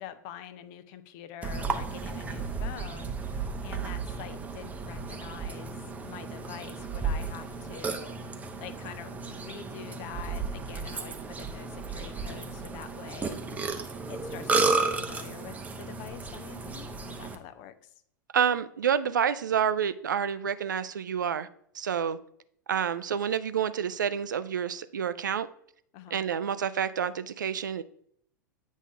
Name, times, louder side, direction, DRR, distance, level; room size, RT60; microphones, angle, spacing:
voice 1, 0.0-13.4 14.1-17.9 25.9-26.2, left 10 dB, 40° left, 0.6 m, -45 dB
Burping eructation, 1.4-17.4, right 4 dB, 15° right, 0.7 m, -33 dB
voice 2, 18.3-21.5 21.7-22.2 22.7-25.5 26.1-27.8, right 8 dB, 65° right, 0.4 m, -28 dB
8.4 x 3.6 x 5.4 m
figure-of-eight pair, 90°, 11 cm